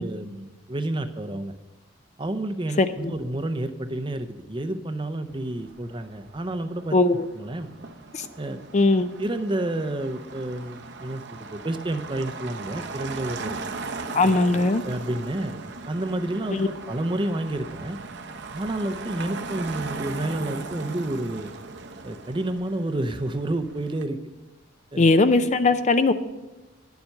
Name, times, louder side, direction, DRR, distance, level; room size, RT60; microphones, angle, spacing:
voice 1, 0.0-1.5 2.2-7.0 7.4-7.7 8.4-8.6 9.2-13.6 14.2-15.6 15.9-18.0 18.5-21.5 22.0-24.2 24.9-25.1, right 1 dB, 25° right, 9 dB, 0.6 m, -30 dB
voice 2, 2.8-3.1 6.9-7.3 8.1-8.3 8.7-9.1 14.1-14.8 16.5-16.7 25.0-26.1, left 3 dB, 35° left, 11 dB, 0.4 m, -19 dB
Motor vehicle (road), 5.3-24.0, right 4 dB, 55° right, 0.7 m, -38 dB
10.5 x 7.1 x 6.5 m, 1.1 s
head